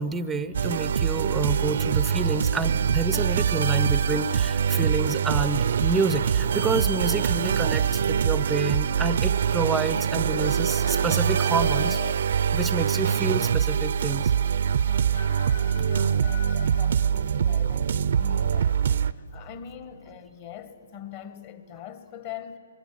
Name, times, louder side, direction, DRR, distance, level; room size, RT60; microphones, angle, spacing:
voice 1, 0.0-12.0 12.5-14.3, right 3 dB, 5° right, 0.6 m, -28 dB
sound 1, 0.5-19.1, right 8 dB, 55° right, 0.6 m, -24 dB
Chicken rooster, 10.3-12.2 14.9-16.6, left 5 dB, 80° left, 6.8 m, -41 dB
voice 2, 15.7-22.6, left 9 dB, 35° left, 1.6 m, -42 dB
26.0 x 22.0 x 9.5 m
hypercardioid pair, 150°, 0 cm